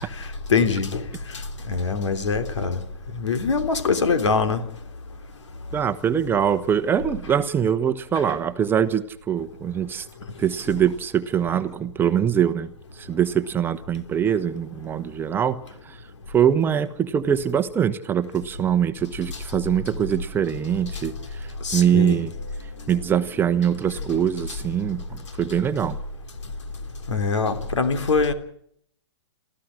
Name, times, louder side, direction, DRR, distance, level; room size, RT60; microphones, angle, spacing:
voice 1, 0.2-1.0 1.7-2.8 3.1-4.6 21.6-22.2 27.1-28.3, left 4 dB, 90° left, 3.2 m, -23 dB
voice 2, 5.7-10.1 10.4-12.7 13.0-16.0 16.3-22.3 22.9-26.0, right 8 dB, 15° right, 1.0 m, -23 dB
27.5 x 14.5 x 6.5 m
hypercardioid pair, 140°, 15 cm